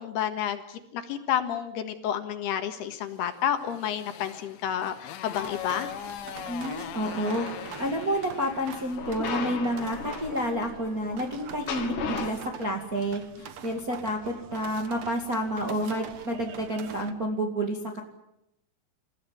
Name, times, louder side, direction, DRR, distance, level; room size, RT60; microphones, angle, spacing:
voice 1, 0.0-5.9, left 9 dB, 70° left, 8 dB, 3.5 m, -30 dB
Motorcycle, 3.2-9.3, left 11 dB, 90° left, 3.6 m, -41 dB
sound 1, 5.3-17.1, right 7 dB, 60° right, 1.7 m, -45 dB
voice 2, 6.5-18.0, equal, 30° right, 2 dB, 1.7 m, -30 dB
sound 2, 6.7-8.1 8.9-12.3, left 6 dB, 55° left, 3.4 m, -36 dB
28.0 x 16.0 x 9.5 m, 0.85 s
omnidirectional pair, 5.1 m